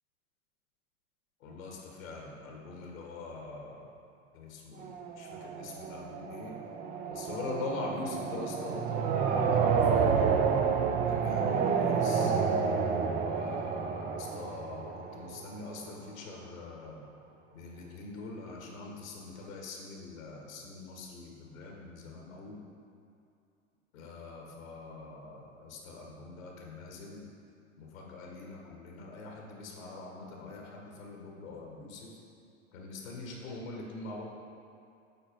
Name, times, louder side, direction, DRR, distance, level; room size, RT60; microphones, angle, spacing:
voice 1, 1.4-3.9 4.3-6.6 7.1-10.4 10.9-12.3 13.0-17.1 17.5-22.6 23.9-27.3 27.8-32.1 32.7-34.2, left 3 dB, 75° left, -1 dB, 1.5 m, -43 dB
sound 1, 4.8-15.6, right 6 dB, 20° right, 0.4 m, -30 dB
7.8 x 4.1 x 4.5 m, 2.5 s
hypercardioid pair, 100°, 41 cm